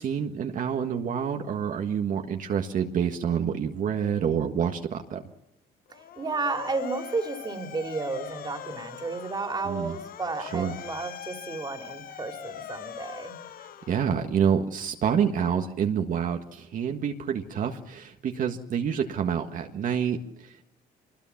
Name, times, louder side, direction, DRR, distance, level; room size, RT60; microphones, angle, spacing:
voice 1, 0.0-5.2 9.6-9.9 10.4-10.7 13.9-20.6, right 7 dB, 50° right, 4 dB, 1.6 m, -28 dB
Motor vehicle (road) / Siren, 5.9-14.5, left 9 dB, 60° left, 1.1 m, -42 dB
voice 2, 5.9-13.4, right 3 dB, 25° right, 5 dB, 3.0 m, -32 dB
25.0 x 20.5 x 7.2 m, 0.81 s
cardioid pair, 110°, 17 cm